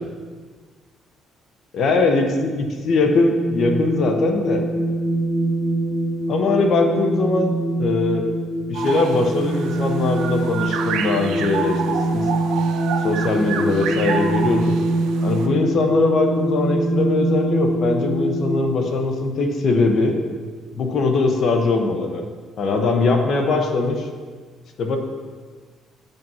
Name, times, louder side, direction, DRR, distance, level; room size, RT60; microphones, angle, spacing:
voice 1, 1.7-4.6 6.3-8.3 8.7-12.2 13.0-14.7 15.2-20.2 20.7-22.2 22.6-24.1 24.8-25.0, left 3 dB, 50° left, 4 dB, 1.0 m, -21 dB
sound 1, 3.4-18.6, right 1 dB, 15° left, 1.1 m, -24 dB
sound 2, 8.7-15.5, right 6 dB, 90° right, 0.6 m, -29 dB
8.9 x 5.4 x 5.6 m, 1.5 s
cardioid pair, 150°, 0 cm